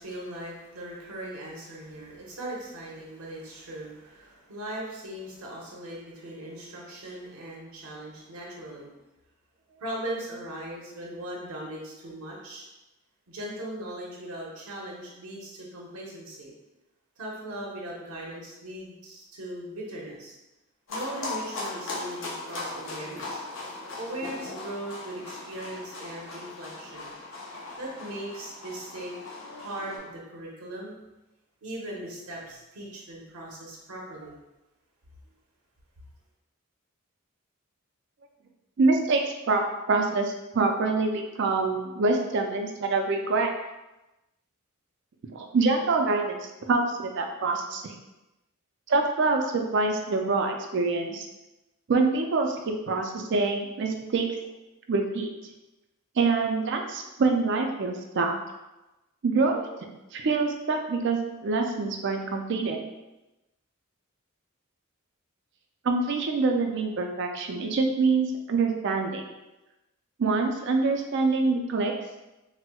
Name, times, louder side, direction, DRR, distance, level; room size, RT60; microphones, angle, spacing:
voice 1, 0.0-9.0 9.8-12.7 13.3-16.5 17.2-20.4 20.9-23.4 24.0-27.1 27.8-29.1 29.6-30.9 31.6-34.3, right 1 dB, 85° right, -3 dB, 0.8 m, -39 dB
sound 1, 20.9-30.0, left 2 dB, 60° left, 0.6 m, -38 dB
voice 2, 38.8-39.2 39.5-39.6 39.9-43.5 45.3-47.9 48.9-51.3 51.9-54.3 54.9-55.3 56.2-58.4 59.2-59.7 60.1-62.8 65.8-69.2 70.2-71.9, right 3 dB, 55° right, 3 dB, 0.4 m, -25 dB
4.2 x 2.0 x 2.2 m, 1.0 s
head